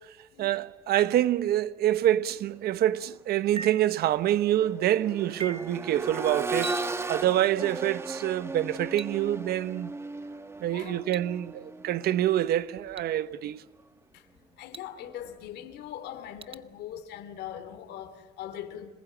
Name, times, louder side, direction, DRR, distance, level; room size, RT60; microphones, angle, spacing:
voice 1, 0.4-6.8 7.1-9.9 10.6-13.6, right 12 dB, 70° right, 1.0 m, -26 dB
Accelerating revving vroom, 2.9-3.0 3.5-13.4 15.1-15.2, right 2 dB, 15° right, 1.4 m, -37 dB
sound 1, 3.6-4.0 5.4-5.8 6.6-7.1 9.0-9.1 11.1-11.2 13.0-13.1 14.7-14.8 16.4-16.5, right 4 dB, 35° right, 0.9 m, -38 dB
voice 2, 10.7-11.1 14.1-14.2 14.6-18.9, left 10 dB, 75° left, 2.7 m, -41 dB
26.5 x 19.5 x 9.1 m
cardioid pair, 110°, 17 cm